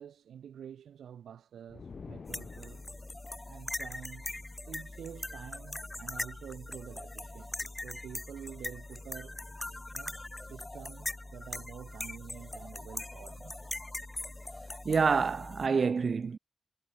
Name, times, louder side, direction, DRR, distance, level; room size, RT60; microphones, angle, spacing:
voice 1, 0.0-2.8 3.4-4.4 4.7-9.4 9.9-13.8, right 9 dB, 85° right, 4.1 m, -48 dB
sound 1, 1.7-3.3, left 5 dB, 60° left, 4.6 m, -47 dB
sound 2, 2.3-15.7, left 2 dB, 25° left, 1.5 m, -41 dB
voice 2, 14.8-16.4, right 5 dB, 60° right, 0.8 m, -27 dB
cardioid pair, 45°, 0 cm